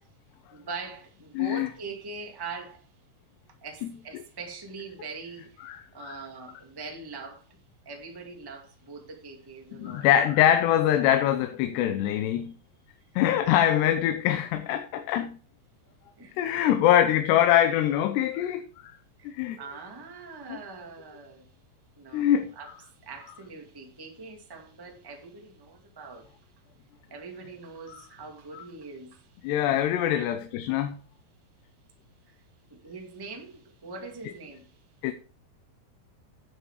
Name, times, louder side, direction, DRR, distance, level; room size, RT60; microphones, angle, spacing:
voice 1, 0.5-2.9 3.6-7.6 7.8-10.1 13.4-14.0 16.2-16.3 19.2-21.5 22.0-26.5 27.1-29.4 30.1-30.3 32.3-32.4 32.7-34.8, right 4 dB, 20° right, 0.6 m, -42 dB
voice 2, 1.4-1.7 5.6-6.2 9.7-12.5 13.2-15.4 16.4-18.9 19.2-19.6 20.5-20.6 22.1-22.5 27.9-28.0 28.5-28.6 29.4-31.0 35.0-35.1, left 11 dB, 85° left, 3.0 m, -24 dB
11.5 x 8.2 x 4.8 m
omnidirectional pair, 4.7 m